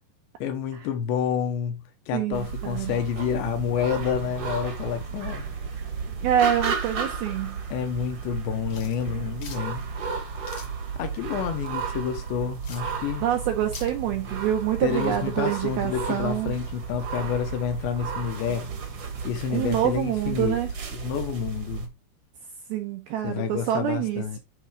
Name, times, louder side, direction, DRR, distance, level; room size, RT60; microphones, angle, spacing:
voice 1, 0.4-1.8 2.1-5.4 7.7-9.8 11.0-13.3 14.8-18.7 19.2-20.6 20.9-21.9 23.2-24.4, left 8 dB, 75° left, 3.2 m, -29 dB
voice 2, 2.1-3.0 6.2-7.6 13.2-16.5 19.5-20.7 22.7-24.4, right 11 dB, 80° right, 2.2 m, -26 dB
sound 1, 2.3-21.9, right 5 dB, 60° right, 1.6 m, -33 dB
sound 2, 8.7-13.9, left 5 dB, 60° left, 1.5 m, -47 dB
11.5 x 3.9 x 3.8 m
omnidirectional pair, 5.3 m